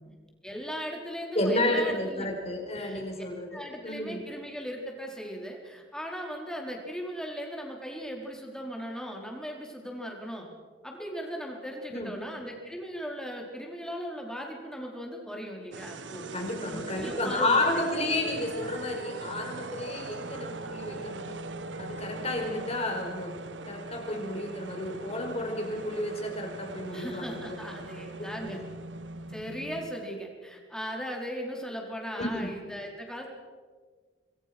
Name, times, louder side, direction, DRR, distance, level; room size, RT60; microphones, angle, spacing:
voice 1, 0.4-2.3 2.8-3.0 3.5-10.5 10.8-17.8 26.9-28.6 29.3-33.3, equal, 5° left, 0 dB, 4.8 m, -38 dB
voice 2, 1.3-4.2 11.9-12.1 16.3-21.4 21.8-27.6 28.2-28.6 32.2-32.5, left 1 dB, 35° left, 2 dB, 5.4 m, -31 dB
sound 1, 15.7-30.0, right 3 dB, 85° right, 1.2 m, -41 dB
27.5 x 21.0 x 6.3 m, 1.5 s
head